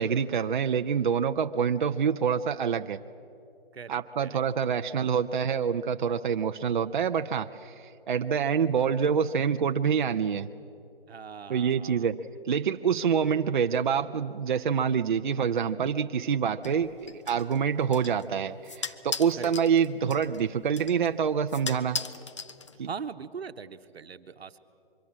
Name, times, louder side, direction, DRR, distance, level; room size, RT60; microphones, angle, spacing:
voice 1, 0.0-3.0 3.9-10.5 11.5-12.2 12.4-22.0 22.8-22.9, right 7 dB, 50° right, 7 dB, 0.6 m, -26 dB
voice 2, 3.7-4.4 11.1-12.1 19.4-19.5 22.8-24.6, right 6 dB, 90° right, 10 dB, 1.2 m, -40 dB
sound 1, 16.6-23.1, left 5 dB, 30° left, 0.6 m, -40 dB
24.0 x 23.5 x 7.4 m, 2.7 s
hypercardioid pair, 170°, 30 cm